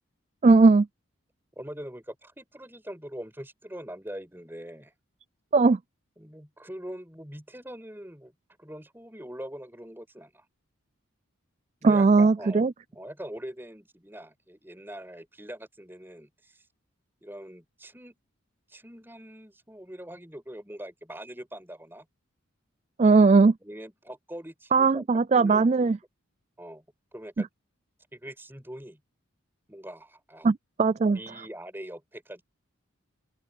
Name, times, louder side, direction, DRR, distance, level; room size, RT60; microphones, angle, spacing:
voice 1, 0.4-0.9 5.5-5.8 11.8-12.7 23.0-23.5 24.7-26.0 30.4-31.2, right 4 dB, 30° right, 0.3 m, -19 dB
voice 2, 1.6-4.9 6.2-8.3 8.6-10.4 11.8-12.7 12.9-16.6 17.2-18.2 18.7-22.1 23.6-25.0 25.3-25.9 26.6-26.8 27.1-27.5 28.1-29.0 29.7-30.5 31.1-32.4, equal, 10° right, 5.8 m, -42 dB
open air
head